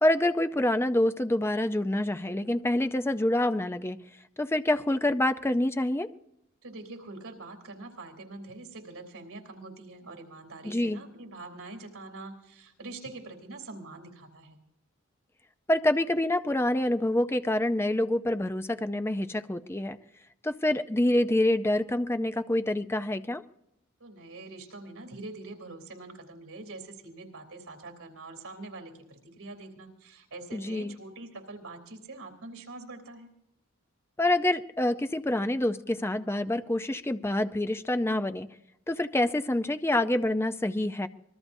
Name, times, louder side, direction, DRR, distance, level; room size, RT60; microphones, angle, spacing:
voice 1, 0.0-4.0 4.4-6.1 10.6-11.0 15.7-20.0 20.4-23.4 30.5-30.9 34.2-38.5 38.9-41.1, left 1 dB, 10° left, 10 dB, 0.5 m, -26 dB
voice 2, 6.6-14.6 24.0-33.3, right 2 dB, 90° right, 4 dB, 3.4 m, -44 dB
25.5 x 21.0 x 2.7 m, 0.81 s
head